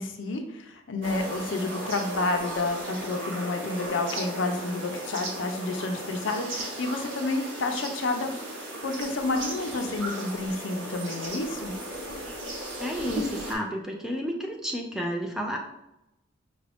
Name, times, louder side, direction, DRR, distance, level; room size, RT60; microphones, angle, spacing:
voice 1, 0.0-8.3 8.8-11.7, left 2 dB, 85° left, 5 dB, 0.6 m, -30 dB
sound 1, 1.0-13.5, right 1 dB, 80° right, 1.1 m, -36 dB
voice 2, 12.8-15.6, equal, 5° right, 1 dB, 0.4 m, -31 dB
5.4 x 2.6 x 3.4 m, 0.89 s
head